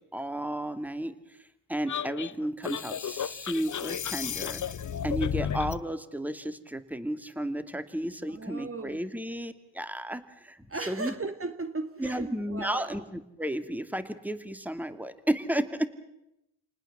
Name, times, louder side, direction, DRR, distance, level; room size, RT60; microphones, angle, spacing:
voice 1, 0.0-1.4 1.7-4.6 5.0-11.1 12.0-15.9, right 1 dB, 5° right, 2.4 m, -33 dB
sound 1, 1.9-5.8, left 8 dB, 40° left, 1.0 m, -33 dB
voice 2, 8.3-9.0 10.7-12.9, right 3 dB, 30° right, 1.9 m, -36 dB
28.5 x 19.5 x 7.5 m
supercardioid pair, 55°, 45 cm